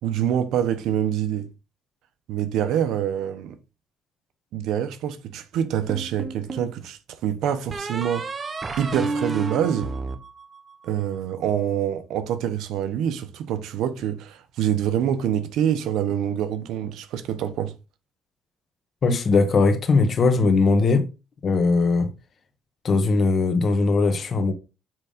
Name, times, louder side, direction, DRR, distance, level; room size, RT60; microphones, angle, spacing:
voice 1, 0.0-1.5 2.3-3.6 4.5-8.3 8.8-9.9 10.8-17.7, right 9 dB, 90° right, 0.9 m, -26 dB
sound 1, 5.9-6.7 7.7-11.0, right 3 dB, 35° right, 1.1 m, -31 dB
voice 2, 19.0-21.1 21.4-22.1 22.8-24.5, left 3 dB, 45° left, 1.5 m, -20 dB
7.5 x 3.6 x 5.0 m
cardioid pair, 115°, 0 cm